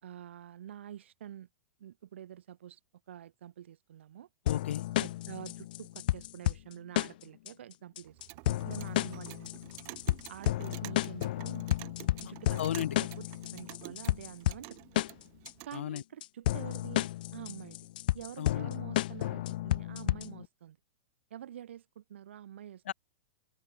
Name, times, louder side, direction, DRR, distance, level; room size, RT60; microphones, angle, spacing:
voice 1, 0.0-1.5 1.8-2.8 3.1-4.3 5.0-9.7 10.3-11.7 12.2-15.0 15.6-17.8 18.1-20.8 21.3-22.8, right 10 dB, 70° right, 4.2 m, -47 dB
voice 2, 4.5-4.8 12.6-12.9 15.7-16.0 18.4-18.7 22.9-23.0, left 11 dB, 70° left, 1.4 m, -33 dB
sound 1, 4.5-20.4, left 15 dB, 45° left, 0.8 m, -32 dB
Clock, 8.0-15.8, right 34 dB, 30° right, 6.7 m, -50 dB
open air
supercardioid pair, 175°, 7 cm